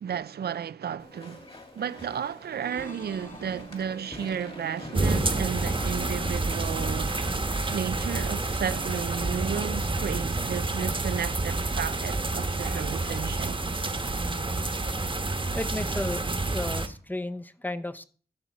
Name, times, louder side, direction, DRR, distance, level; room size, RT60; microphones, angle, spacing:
voice 1, 0.0-7.2 7.7-13.6, right 8 dB, 80° right, 0.4 m, -33 dB
Walk footsteps / Chatter / Squeak, 1.0-8.7, left 2 dB, 35° left, 2.1 m, -46 dB
sound 1, 2.6-4.3 5.6-7.2 8.5-10.3, left 2 dB, 55° left, 2.0 m, -50 dB
sound 2, 4.9-16.9, right 2 dB, 30° right, 1.1 m, -29 dB
voice 2, 15.5-18.1, left 1 dB, 10° left, 0.7 m, -33 dB
13.0 x 7.0 x 4.1 m
wide cardioid pair, 95°, 17 cm